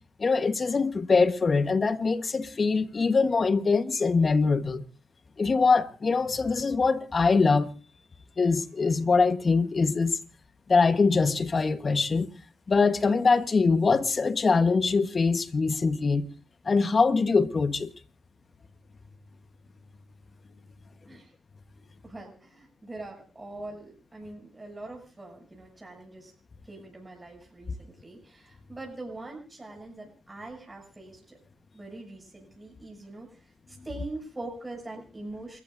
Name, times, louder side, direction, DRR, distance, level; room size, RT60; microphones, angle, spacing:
voice 1, 0.2-4.8 5.4-7.7 8.4-10.2 10.7-12.3 12.7-16.3 16.6-17.9, left 4 dB, 45° left, 1.3 m, -23 dB
voice 2, 21.0-21.3 22.0-26.3 26.7-31.4 31.7-35.6, right 2 dB, 20° right, 7.3 m, -43 dB
28.5 x 14.5 x 2.7 m
supercardioid pair, 60°, 0 cm